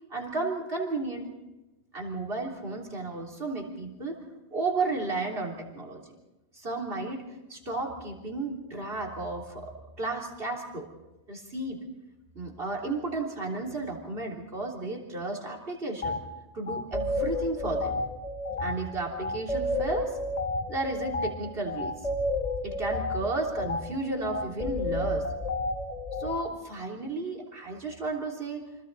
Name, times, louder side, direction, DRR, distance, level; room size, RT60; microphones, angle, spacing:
voice 1, 0.1-1.3 1.9-4.2 4.5-6.0 6.5-10.9 11.3-11.8 12.4-16.2 16.5-18.0 18.6-20.2 20.7-22.0 22.6-25.2 26.2-28.7, right 2 dB, 55° right, -1 dB, 3.8 m, -33 dB
sound 1, 16.0-16.2 16.7-26.4, left 2 dB, 35° left, 2.3 m, -31 dB
28.5 x 25.5 x 4.1 m, 1.0 s
omnidirectional pair, 1.2 m